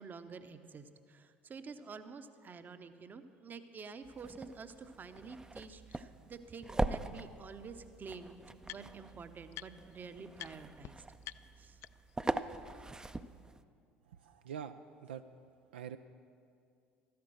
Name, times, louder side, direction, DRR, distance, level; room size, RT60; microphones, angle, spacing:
voice 1, 0.0-8.4 8.6-11.0 11.6-11.8, right 5 dB, 30° right, 10 dB, 0.8 m, -49 dB
sound 1, 4.0-13.6, right 2 dB, 10° right, 0.5 m, -41 dB
sound 2, 5.2-5.3 5.9-6.0 7.3-7.4 7.6-9.1 9.5-10.0 10.3-10.5 10.8-10.9 11.2-12.2, left 15 dB, 50° left, 0.3 m, -50 dB
voice 2, 14.2-14.7 15.0-15.2 15.7-16.0, right 8 dB, 75° right, 9 dB, 0.4 m, -44 dB
13.5 x 10.5 x 6.3 m, 2.3 s
figure-of-eight pair, 60°, 6 cm